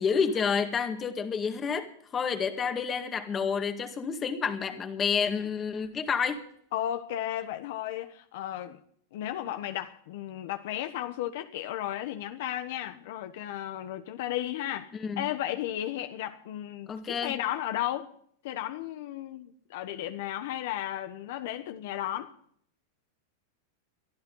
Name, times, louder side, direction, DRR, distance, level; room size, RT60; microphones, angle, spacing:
voice 1, 0.0-1.9 2.1-6.4 15.0-15.2 16.9-17.3, left 6 dB, 20° left, 1.9 m, -29 dB
voice 2, 6.7-8.8 9.1-18.1 18.4-22.3, left 12 dB, 60° left, 1.2 m, -34 dB
23.0 x 13.5 x 4.0 m
supercardioid pair, 150°, 0 cm